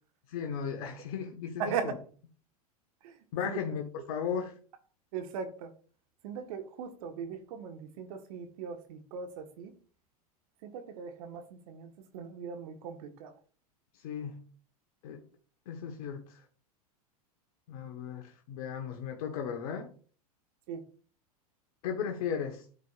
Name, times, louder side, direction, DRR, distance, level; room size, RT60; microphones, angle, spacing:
voice 1, 0.3-2.0 3.3-4.5 14.0-14.4 15.0-15.2 15.7-16.4 17.7-19.9 21.8-22.6, left 7 dB, 65° left, 1.1 m, -36 dB
voice 2, 1.6-2.0 3.0-3.1 3.5-3.8 5.1-5.7 6.2-9.7 10.6-13.3 20.7-20.8, right 6 dB, 65° right, 1.3 m, -39 dB
12.5 x 4.7 x 2.4 m
hypercardioid pair, 100°, 20 cm